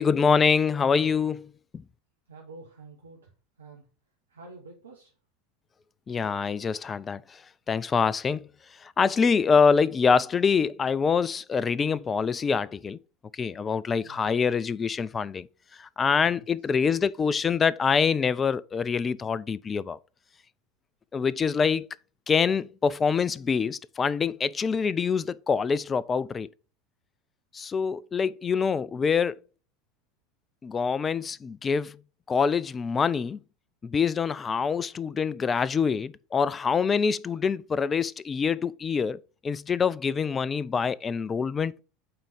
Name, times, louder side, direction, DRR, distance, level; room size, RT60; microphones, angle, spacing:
voice 1, 0.0-1.5 6.1-7.4 7.7-8.5 8.8-13.0 13.3-15.5 15.8-20.0 21.1-21.9 22.3-26.5 27.5-29.4 30.6-32.0 32.3-33.4 33.8-41.8, left 6 dB, 25° left, 0.3 m, -25 dB
voice 2, 2.3-3.3 3.6-3.9 4.3-5.1 9.0-9.2 14.0-14.3 16.1-16.4, right 3 dB, 80° right, 1.3 m, -48 dB
8.8 x 3.7 x 5.0 m
figure-of-eight pair, 80°, 0 cm